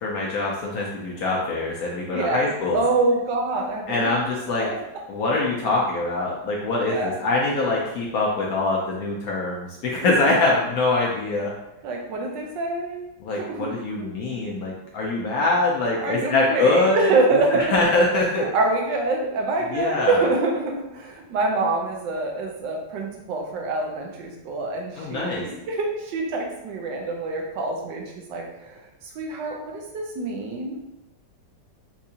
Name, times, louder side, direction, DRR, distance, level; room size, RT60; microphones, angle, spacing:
voice 1, 0.0-2.8 3.9-4.7 5.1-11.5 13.2-17.1 17.5-18.5 19.7-20.3 25.0-25.4, left 2 dB, 70° left, -3 dB, 0.8 m, -23 dB
voice 2, 2.1-4.1 4.6-4.8 6.8-7.2 10.0-10.6 11.8-13.0 13.3-13.7 14.0-14.1 16.0-17.6 18.4-28.0 28.3-28.8 29.1-30.8, right 3 dB, 75° right, 0 dB, 1.3 m, -26 dB
4.4 x 2.4 x 2.7 m, 0.89 s
omnidirectional pair, 2.0 m